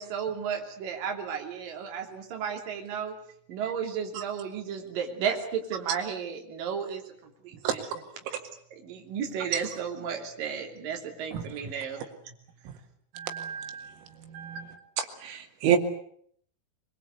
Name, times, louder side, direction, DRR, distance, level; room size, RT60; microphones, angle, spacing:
voice 1, 0.0-3.1 3.5-7.9 8.8-12.3, right 7 dB, 45° right, 3 dB, 4.3 m, -33 dB
voice 2, 7.6-8.0 11.3-11.4 13.1-14.8 15.7-15.8, right 8 dB, 85° right, 7 dB, 4.5 m, -35 dB
voice 3, 15.0-15.8, right 10 dB, 65° right, 5 dB, 4.4 m, -25 dB
24.5 x 22.0 x 8.3 m, 0.64 s
omnidirectional pair, 5.9 m